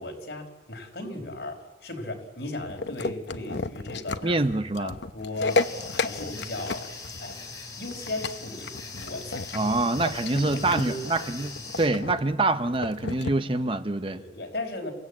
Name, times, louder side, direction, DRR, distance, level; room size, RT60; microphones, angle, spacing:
voice 1, 0.0-4.4 4.8-6.9 7.2-7.4 7.8-9.7 10.0-11.0 14.0-14.9, left 2 dB, 60° left, 5.2 m, -36 dB
sound 1, 2.7-13.3, left 3 dB, 75° left, 1.0 m, -33 dB
voice 2, 4.2-5.0 9.5-14.2, right 2 dB, 30° right, 0.8 m, -26 dB
sound 2, 5.5-11.9, left 4 dB, 20° left, 5.5 m, -40 dB
29.5 x 16.5 x 8.5 m
head